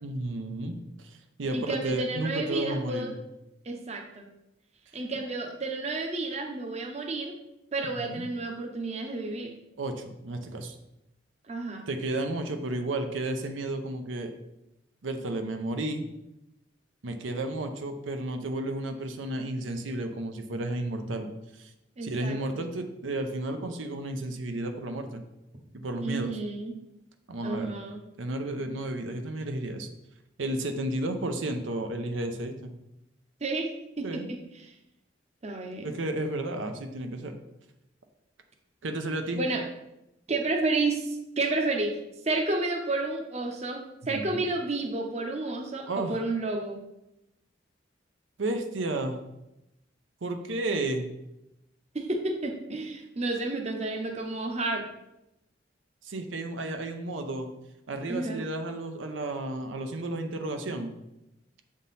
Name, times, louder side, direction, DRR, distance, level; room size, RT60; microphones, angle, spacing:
voice 1, 0.0-3.1 7.9-8.3 9.8-10.8 11.9-14.3 15.0-16.1 17.0-21.7 22.0-25.2 25.7-26.3 27.3-27.7 28.2-29.9 30.4-32.7 34.0-34.3 35.8-37.4 38.8-39.4 44.1-44.4 45.9-46.2 48.4-49.2 50.2-51.1 56.0-57.5 57.9-60.9, right 2 dB, 85° right, 6 dB, 0.7 m, -32 dB
voice 2, 1.5-3.2 3.6-4.3 4.9-7.4 7.7-9.5 11.5-11.9 22.0-22.6 26.0-26.7 27.4-28.0 33.4-33.7 34.0-34.2 35.4-35.9 39.3-39.6 40.3-42.0 42.2-43.8 44.1-46.8 51.9-54.8 58.1-58.4, right 2 dB, 35° right, 2 dB, 0.7 m, -31 dB
7.3 x 3.7 x 4.0 m, 0.90 s
head